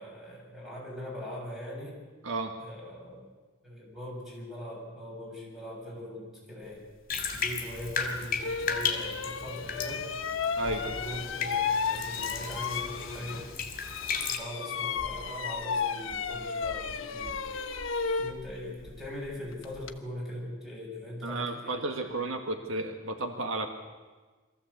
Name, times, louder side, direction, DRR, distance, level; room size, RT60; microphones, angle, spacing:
voice 1, 0.0-2.0 2.6-3.3 3.6-6.9 7.3-10.0 10.6-13.4 14.3-17.4 18.2-21.8, left 1 dB, ahead, -4 dB, 7.4 m, -41 dB
voice 2, 2.2-2.6 10.6-10.8 21.2-23.7, right 2 dB, 80° right, 5 dB, 1.8 m, -33 dB
Bathtub (filling or washing), 7.1-14.4, left 5 dB, 45° left, 2.9 m, -35 dB
sound 1, 8.4-13.6 13.8-20.0, left 5 dB, 70° left, 1.1 m, -33 dB
22.5 x 15.0 x 8.2 m, 1.3 s
head